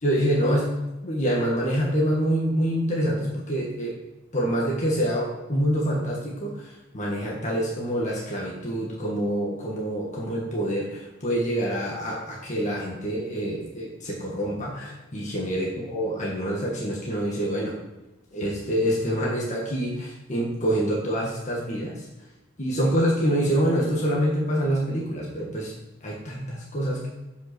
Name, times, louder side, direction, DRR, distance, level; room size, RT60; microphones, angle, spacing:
voice 1, 0.0-0.8 1.0-3.9 4.3-17.8 18.3-22.0 22.6-25.7 26.0-27.1, equal, 35° left, -4 dB, 1.7 m, -26 dB
7.7 x 5.8 x 6.1 m, 1.0 s
head